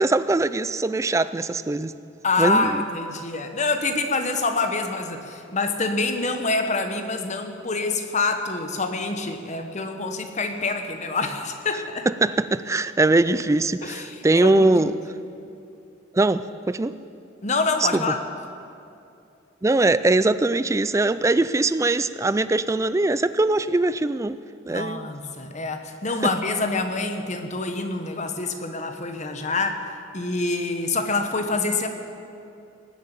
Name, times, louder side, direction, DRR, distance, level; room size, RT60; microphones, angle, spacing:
voice 1, 0.0-1.9 2.4-2.8 12.2-14.9 16.1-17.0 17.9-18.0 19.6-24.4 24.7-25.1, right 2 dB, 15° right, 14 dB, 0.3 m, -21 dB
voice 2, 2.2-12.1 13.8-14.7 17.4-18.2 24.7-29.9 30.1-31.9, left 3 dB, 35° left, 6 dB, 1.2 m, -26 dB
19.5 x 7.9 x 9.1 m, 2.6 s
head